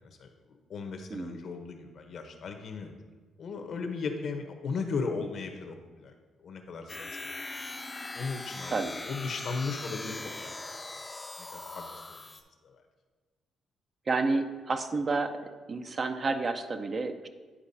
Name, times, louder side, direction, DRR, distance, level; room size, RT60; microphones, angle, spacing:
voice 1, 0.0-2.9 3.4-7.1 8.1-10.6 11.1-12.2 12.6-12.8, left 4 dB, 60° left, 6 dB, 0.8 m, -37 dB
voice 2, 1.1-1.4 8.7-8.9 14.1-15.4 15.7-17.3, right 3 dB, 40° right, 7 dB, 0.5 m, -30 dB
sound 1, 6.9-12.4, left 2 dB, 25° left, 0.5 m, -40 dB
9.9 x 4.7 x 2.7 m, 1.4 s
cardioid pair, 90°, 0 cm